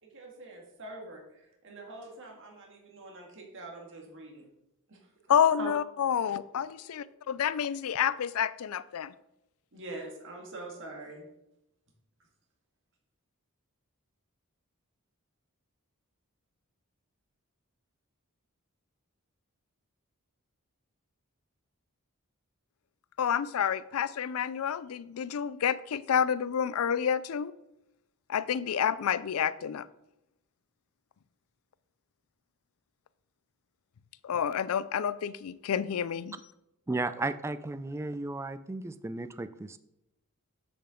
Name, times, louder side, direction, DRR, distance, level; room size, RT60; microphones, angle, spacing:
voice 1, 0.1-4.5 4.9-5.0 5.3-5.7 9.7-11.3, right 2 dB, 60° right, 1.8 m, -44 dB
voice 2, 5.3-9.1 23.2-27.5 28.3-29.9 34.2-36.3, left 8 dB, 70° left, 0.4 m, -29 dB
voice 3, 36.9-39.8, right 2 dB, 10° right, 0.3 m, -34 dB
7.9 x 6.8 x 3.7 m
head